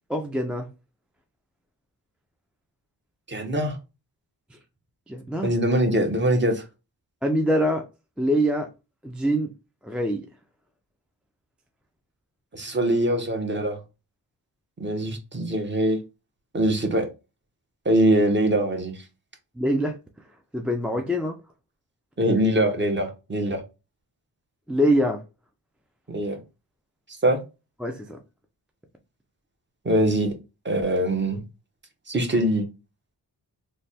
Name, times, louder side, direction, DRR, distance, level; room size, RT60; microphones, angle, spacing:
voice 1, 0.1-0.7 5.1-5.5 7.2-7.9 8.2-8.7 9.0-9.5 9.8-10.3 19.6-20.0 20.5-21.4 24.7-25.2 27.8-28.2, equal, 5° right, 0.3 m, -24 dB
voice 2, 3.3-3.8 5.4-6.6 12.5-13.8 14.8-16.0 16.5-17.1 17.8-19.0 22.2-23.6 26.1-26.4 27.2-27.4 29.8-30.3 30.6-31.4 32.1-32.6, right 1 dB, 25° right, 0.8 m, -23 dB
3.2 x 2.2 x 4.1 m
wide cardioid pair, 125°, 40 cm